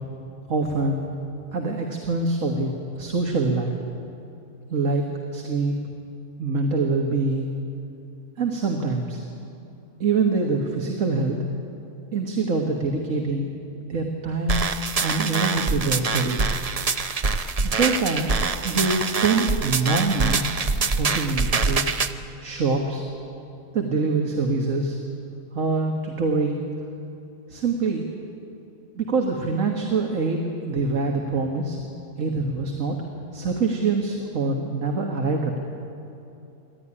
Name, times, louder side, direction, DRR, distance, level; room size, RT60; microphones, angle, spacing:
voice 1, 0.5-1.0 1.5-3.8 4.7-5.1 5.3-5.7 6.4-7.5 8.4-9.2 10.0-11.4 12.1-13.5 13.9-14.6 15.0-16.5 17.6-18.3 18.6-20.7 21.0-22.0 22.4-23.0 23.7-25.0 25.5-26.7 27.5-28.1 29.0-31.8 32.2-33.0 33.3-35.6, right 3 dB, 70° right, 2 dB, 1.8 m, -24 dB
sound 1, 14.5-22.1, right 4 dB, 40° right, 0.6 m, -25 dB
27.0 x 12.0 x 9.9 m, 2.7 s
omnidirectional pair, 1.4 m